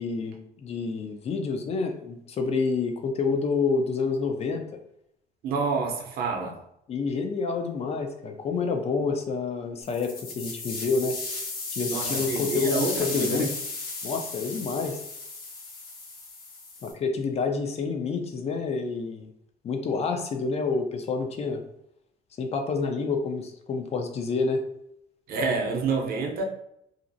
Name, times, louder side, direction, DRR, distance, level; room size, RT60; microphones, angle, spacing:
voice 1, 0.0-4.6 6.9-11.2 11.7-13.5 14.0-15.0 16.8-19.3 19.6-21.6 22.4-24.6, left 4 dB, 40° left, 5 dB, 0.4 m, -28 dB
voice 2, 5.4-6.6 11.9-13.5 25.3-26.4, right 4 dB, 65° right, 1 dB, 0.6 m, -28 dB
sound 1, 9.8-16.9, left 3 dB, 60° left, 0.8 m, -35 dB
2.5 x 2.0 x 2.6 m, 0.76 s
cardioid pair, 110°, 17 cm